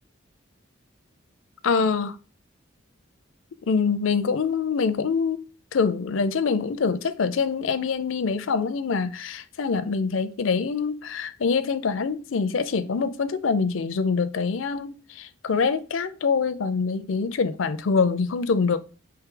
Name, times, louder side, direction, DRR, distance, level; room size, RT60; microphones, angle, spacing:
voice 1, 1.6-2.2 3.7-5.4 5.7-18.8, left 5 dB, 75° left, 0.5 m, -25 dB
4.6 x 3.1 x 3.7 m
head